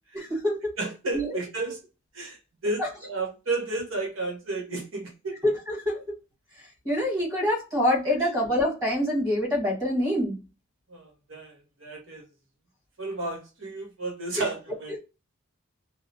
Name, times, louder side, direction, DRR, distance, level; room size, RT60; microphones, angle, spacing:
voice 1, 0.1-0.7 1.1-1.4 2.8-2.9 5.4-6.0 6.8-10.4 14.3-14.4, equal, 15° right, 1.5 m, -25 dB
voice 2, 0.8-1.8 2.1-2.4 2.6-5.4 10.9-12.2 13.0-14.9, right 2 dB, 65° right, 0.9 m, -32 dB
2.6 x 2.1 x 2.6 m
head